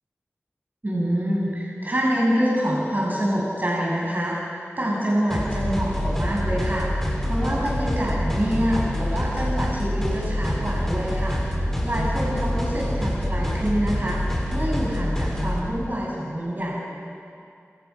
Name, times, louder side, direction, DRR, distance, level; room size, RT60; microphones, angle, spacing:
voice 1, 0.8-11.4 11.8-16.8, equal, 40° right, -5 dB, 7.0 m, -26 dB
sound 1, 5.3-15.6, equal, 5° left, 6.9 m, -26 dB
28.5 x 27.0 x 5.9 m, 2.4 s
wide cardioid pair, 60°, 5 cm